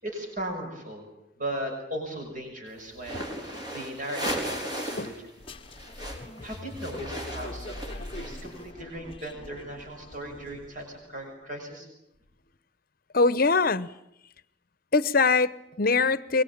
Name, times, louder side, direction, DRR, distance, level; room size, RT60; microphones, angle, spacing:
voice 1, 0.0-1.1 1.4-5.1 6.4-11.9, right 1 dB, 40° right, 2 dB, 6.5 m, -37 dB
sound 1, 3.0-5.2 5.4-8.6, right 1 dB, 20° right, 4.3 m, -36 dB
sound 2, 5.4-11.0, left 1 dB, 30° left, 1.0 m, -42 dB
voice 2, 13.1-13.9 14.9-16.4, left 4 dB, 50° left, 17 dB, 0.9 m, -23 dB
24.0 x 22.5 x 8.8 m, 0.80 s
head